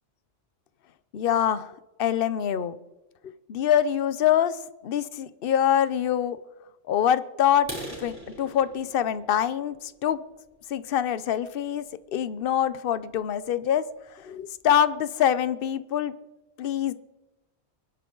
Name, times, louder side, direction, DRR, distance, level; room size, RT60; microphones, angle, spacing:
voice 1, 1.1-1.7 2.0-2.8 3.5-4.6 4.8-6.4 6.9-7.7 8.0-9.8 10.0-10.2 10.7-11.8 12.1-13.8 14.2-16.1 16.6-16.9, left 10 dB, 60° left, 15 dB, 0.9 m, -24 dB
sound 1, 7.6-11.3 11.9-12.1 12.5-12.6 13.0-13.2 13.5-13.6 14.1-14.2 14.4-14.9, right 1 dB, 20° right, 5.7 m, -42 dB
25.5 x 11.0 x 3.9 m, 1.0 s
omnidirectional pair, 1.1 m